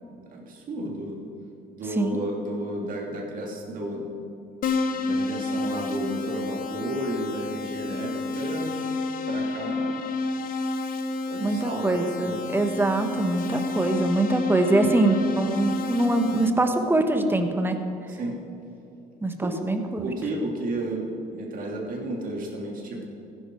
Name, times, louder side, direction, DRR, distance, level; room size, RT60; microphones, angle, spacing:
voice 1, 0.3-1.2 1.7-4.1 4.9-8.8 9.3-10.1 11.3-11.8 12.2-12.4 18.1-18.4 19.4-19.6 20.0-23.1, right 1 dB, 55° right, 0 dB, 2.6 m, -32 dB
Keyboard (musical), 4.6-16.5, left 3 dB, 55° left, 1.0 m, -30 dB
voice 2, 11.4-17.8 19.2-20.1, right 2 dB, 15° right, 6 dB, 1.2 m, -23 dB
15.0 x 10.5 x 4.5 m, 2.9 s
cardioid pair, 110°, 17 cm